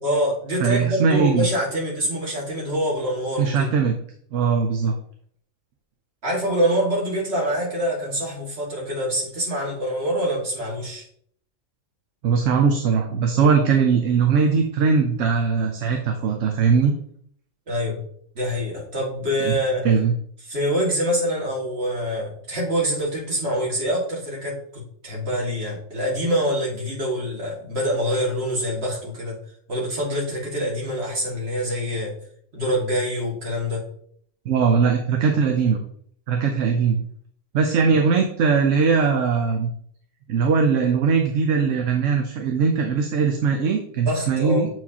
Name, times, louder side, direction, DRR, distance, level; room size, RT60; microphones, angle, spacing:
voice 1, 0.0-3.7 6.2-11.0 17.7-18.0 18.4-19.9 20.5-29.4 29.7-32.2 32.5-33.9 44.0-44.7, equal, 50° right, -5 dB, 2.2 m, -25 dB
voice 2, 0.6-1.5 3.4-4.0 4.3-4.9 12.2-16.9 19.4-19.5 19.8-20.1 34.5-35.8 36.3-37.0 37.5-39.7 40.3-44.7, right 5 dB, 70° right, 4 dB, 1.0 m, -20 dB
7.4 x 4.6 x 2.8 m, 0.63 s
omnidirectional pair, 1.4 m